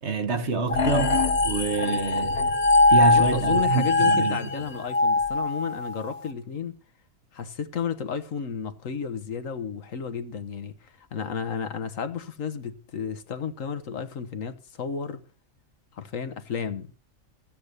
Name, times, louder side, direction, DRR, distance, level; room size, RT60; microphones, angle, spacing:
voice 1, 0.0-2.4 2.9-4.4, right 4 dB, 55° right, 1.5 m, -27 dB
sound 1, 0.7-6.1, left 2 dB, 50° left, 1.4 m, -22 dB
voice 2, 3.1-6.8 7.3-15.2 15.9-16.9, left 6 dB, 70° left, 1.5 m, -32 dB
15.0 x 8.8 x 6.7 m
omnidirectional pair, 1.4 m